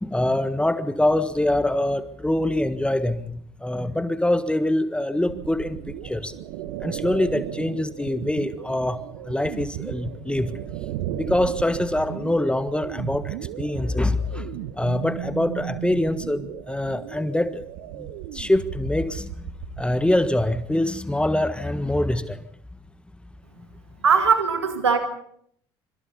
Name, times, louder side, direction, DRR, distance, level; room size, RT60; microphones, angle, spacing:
voice 1, 0.0-5.8 6.0-6.3 6.8-9.0 9.3-10.5 11.1-14.4 14.8-17.6 18.0-18.1 18.3-19.3 19.8-22.4, left 1 dB, 5° left, 12 dB, 1.5 m, -24 dB
sound 1, 5.3-20.7, right 13 dB, 65° right, 1.2 m, -35 dB
voice 2, 24.0-25.0, right 6 dB, 85° right, 7 dB, 2.0 m, -19 dB
25.5 x 25.0 x 4.1 m, 0.67 s
figure-of-eight pair, 55°, 14 cm